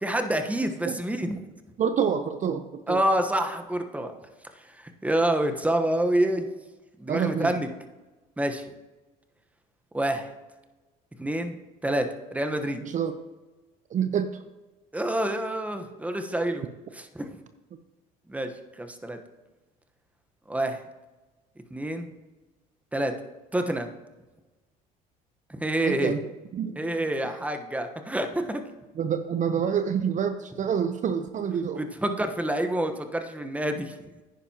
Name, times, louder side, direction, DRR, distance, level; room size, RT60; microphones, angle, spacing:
voice 1, 0.0-1.4 2.9-4.1 5.0-6.5 7.0-7.7 8.4-8.6 9.9-10.3 11.2-11.6 11.8-12.8 14.9-16.6 17.0-17.3 18.3-18.5 18.8-19.2 20.5-20.8 21.7-22.1 22.9-23.1 23.5-23.9 25.5-26.2 26.8-28.6 31.8-33.9, right 1 dB, 10° right, 6 dB, 1.1 m, -27 dB
voice 2, 1.8-3.0 7.1-7.6 12.8-13.1 13.9-14.4 25.8-26.2 26.5-26.8 28.9-31.9, right 7 dB, 45° right, 9 dB, 0.7 m, -27 dB
10.5 x 9.9 x 2.9 m, 1.2 s
supercardioid pair, 75°, 18 cm